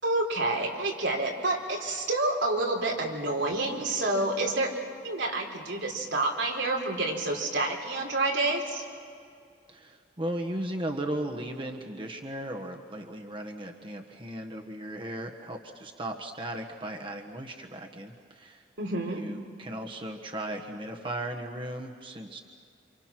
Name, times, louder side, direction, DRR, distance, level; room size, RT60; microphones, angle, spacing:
voice 1, 0.0-4.7 5.0-8.8 18.8-19.2, right 2 dB, 90° right, 0 dB, 4.4 m, -28 dB
voice 2, 9.7-18.6 19.1-22.4, right 1 dB, 30° right, 2 dB, 1.4 m, -36 dB
29.0 x 27.5 x 6.1 m, 2.3 s
head